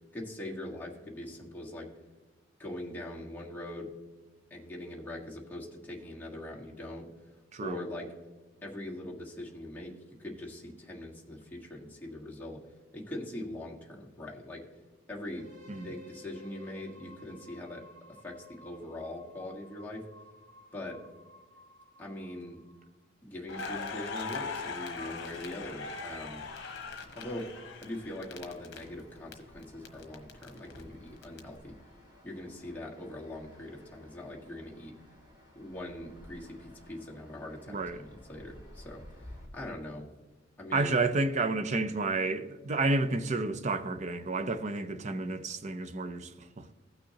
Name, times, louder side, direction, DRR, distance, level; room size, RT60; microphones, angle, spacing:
voice 1, 0.1-1.9 2.6-3.9 4.5-7.1 7.6-8.1 8.6-9.9 10.2-12.6 12.9-14.6 15.1-15.5 15.8-17.8 18.1-20.0 20.7-21.0 22.0-22.6 23.2-26.4 27.1-31.7 32.2-34.9 35.5-40.0 40.6-41.0, left 1 dB, 10° left, 1.5 m, -42 dB
voice 2, 7.5-7.8 15.8-15.9 37.7-38.0 40.7-46.3 46.6-46.7, right 3 dB, 40° right, 0.5 m, -30 dB
sound 1, 15.2-23.0, left 1 dB, 80° right, 3.4 m, -55 dB
Crackle, 23.5-29.3 29.6-31.4, left 4 dB, 60° left, 1.2 m, -40 dB
sound 2, 23.5-39.5, left 1 dB, 20° right, 2.3 m, -56 dB
15.5 x 6.4 x 2.8 m
head